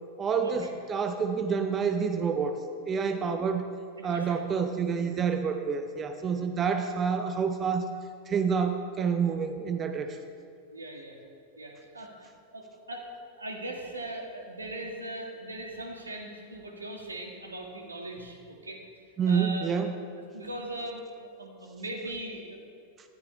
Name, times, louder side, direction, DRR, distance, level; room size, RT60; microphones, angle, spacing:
voice 1, 0.2-2.5 2.8-3.6 4.0-7.9 8.3-10.2 19.2-20.0, right 6 dB, 25° right, 7 dB, 0.8 m, -28 dB
voice 2, 4.0-4.4 10.7-11.2 11.6-12.3 12.5-13.1 13.4-18.8 19.3-19.7 20.3-21.0 21.4-22.6, right 1 dB, 75° right, 1 dB, 2.0 m, -39 dB
18.5 x 13.5 x 3.4 m, 2.3 s
figure-of-eight pair, 90°, 0 cm